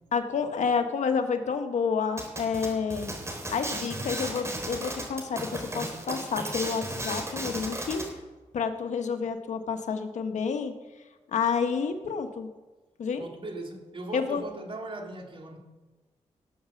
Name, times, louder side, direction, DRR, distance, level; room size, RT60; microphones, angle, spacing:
voice 1, 0.1-3.1 3.5-8.0 8.5-10.7 11.3-12.5 13.0-13.3 14.1-14.4, left 5 dB, 75° left, 7 dB, 1.3 m, -29 dB
sound 1, 2.2-8.1, right 1 dB, 20° right, 3.9 m, -35 dB
voice 2, 13.2-15.6, right 2 dB, 45° right, 1 dB, 3.0 m, -39 dB
18.5 x 7.0 x 7.1 m, 1.2 s
cardioid pair, 85°, 12 cm